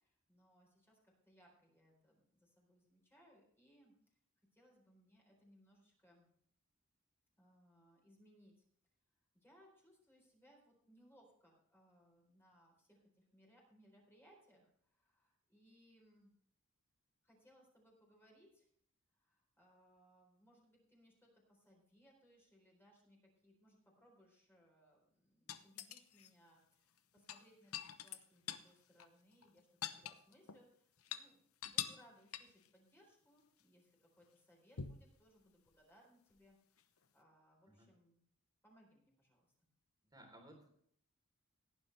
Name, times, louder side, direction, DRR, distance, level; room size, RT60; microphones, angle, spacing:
voice 1, 0.0-3.9 4.5-6.3 7.4-8.6 9.3-16.4 17.2-18.7 19.1-29.7 30.0-36.6 37.1-38.2 38.6-39.5, equal, 10° left, -2 dB, 4.0 m, -68 dB
sound 1, 25.5-26.3 27.2-28.7 29.0-29.1 29.4-30.6 31.0-31.2 31.6-32.1 32.3-32.7 34.8-35.1 36.8-36.9, left 10 dB, 80° left, 0.9 m, -45 dB
voice 2, 40.1-40.7, right 1 dB, 20° right, 2 dB, 3.6 m, -59 dB
17.5 x 9.9 x 3.4 m, 0.66 s
head